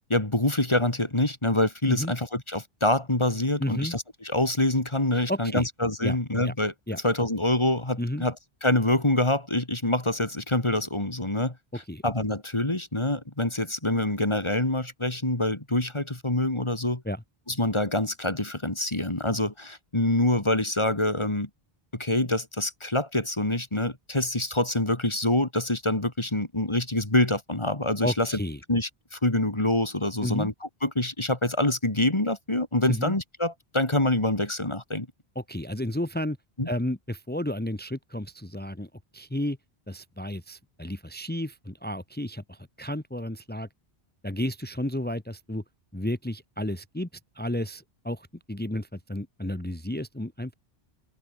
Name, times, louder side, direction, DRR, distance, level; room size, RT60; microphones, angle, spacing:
voice 1, 0.1-8.3 8.6-11.6 12.0-17.0 17.5-21.5 21.9-28.3 28.7-30.5 30.8-35.1 36.6-36.7, left 1 dB, 25° left, 2.5 m, -26 dB
voice 2, 3.6-3.9 5.1-5.7 6.0-6.2 6.4-6.5 6.9-7.0 8.0-8.2 11.7-12.0 17.0-17.2 28.0-28.6 30.2-30.5 32.9-33.2 35.3-36.4 36.7-39.6 39.9-43.7 44.2-45.6 45.9-47.1 47.3-50.5, left 1 dB, 10° left, 1.5 m, -32 dB
open air
omnidirectional pair, 1.0 m